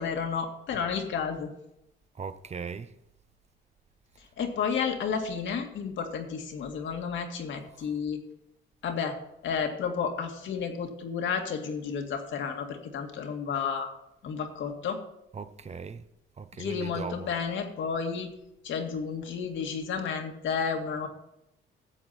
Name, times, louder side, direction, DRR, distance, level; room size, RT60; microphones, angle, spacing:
voice 1, 0.0-1.5 4.4-8.2 8.8-9.2 9.4-13.9 14.2-15.0 16.5-18.3 18.6-21.1, left 6 dB, 70° left, 2.0 m, -31 dB
voice 2, 2.1-2.9 7.7-7.8 15.3-16.1 16.4-17.3, right 5 dB, 35° right, 0.8 m, -39 dB
13.5 x 7.9 x 4.3 m
cardioid pair, 90°, 20 cm